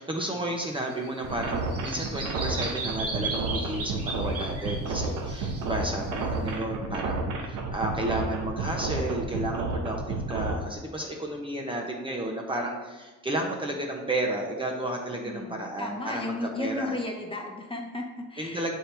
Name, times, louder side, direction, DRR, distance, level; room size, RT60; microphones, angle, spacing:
voice 1, 0.0-16.9 18.4-18.8, right 1 dB, 15° right, 0 dB, 0.8 m, -32 dB
Bird vocalization bird call bird song, 0.6-6.5, right 3 dB, 50° right, 1.3 m, -36 dB
sound 1, 1.2-10.5, right 3 dB, 85° right, 0.9 m, -31 dB
voice 2, 15.2-18.6, left 2 dB, 15° left, 0 dB, 1.0 m, -34 dB
6.5 x 4.5 x 3.4 m, 1.2 s
cardioid pair, 90°, 30 cm